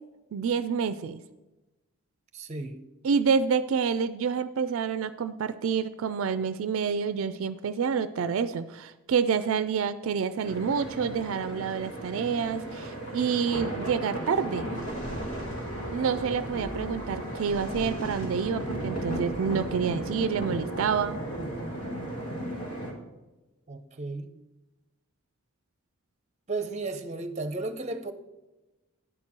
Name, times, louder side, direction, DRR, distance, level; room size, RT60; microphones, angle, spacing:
voice 1, 0.3-1.2 3.0-14.7 15.9-21.2, right 6 dB, 70° right, 0.4 m, -28 dB
voice 2, 2.3-2.8 23.7-24.3 26.5-28.1, right 3 dB, 30° right, 0.6 m, -34 dB
sound 1, 10.4-22.9, right 1 dB, 75° left, 1.9 m, -35 dB
10.0 x 4.5 x 7.3 m
head